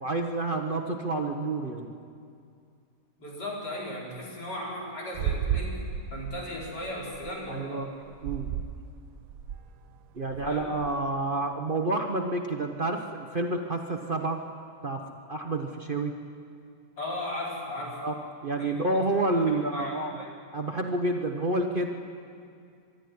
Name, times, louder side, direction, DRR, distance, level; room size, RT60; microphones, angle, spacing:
voice 1, 0.0-1.9 7.5-7.9 8.2-8.5 10.1-14.4 14.8-16.1 18.0-18.1 18.4-20.2 20.5-21.9, right 2 dB, 35° right, 3 dB, 1.0 m, -29 dB
voice 2, 3.2-5.8 6.1-7.9 10.2-10.7 17.0-18.0 18.6-19.1 19.3-20.3, left 1 dB, 75° left, -4 dB, 4.9 m, -37 dB
sound 1, 5.1-7.3 8.1-8.8 9.2-9.7 10.3-10.9, right 8 dB, 65° right, 1.0 m, -33 dB
24.0 x 12.0 x 9.6 m, 2.3 s
omnidirectional pair, 1.8 m